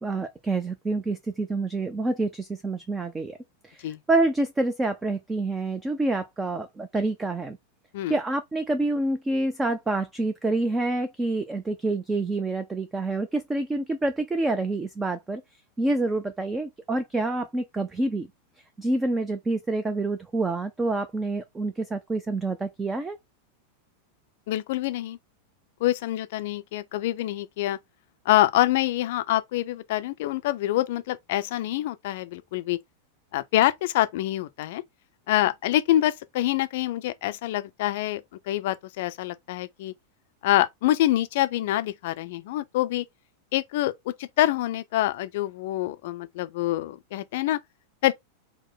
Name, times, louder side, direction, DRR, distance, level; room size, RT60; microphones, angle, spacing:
voice 1, 0.0-3.4 3.6-7.6 8.1-15.4 15.8-18.3 18.8-23.2, right 2 dB, 15° right, 0.5 m, -27 dB
voice 2, 24.5-25.2 25.8-27.8 28.3-32.8 33.3-34.8 35.3-39.9 40.4-43.0 43.5-47.6 48.0-48.1, left 14 dB, 50° left, 0.5 m, -26 dB
4.5 x 2.1 x 3.9 m
figure-of-eight pair, 90°, 0 cm